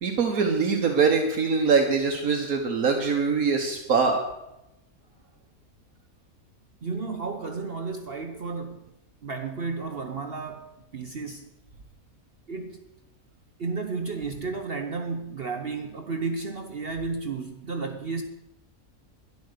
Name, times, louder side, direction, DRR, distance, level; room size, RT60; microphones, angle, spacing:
voice 1, 0.0-4.2, right 5 dB, 70° right, 3 dB, 1.6 m, -23 dB
voice 2, 6.8-8.9 9.2-11.5 12.5-12.8 13.6-18.2, right 4 dB, 45° right, 5 dB, 1.0 m, -33 dB
12.0 x 11.0 x 6.7 m, 0.90 s
omnidirectional pair, 1.6 m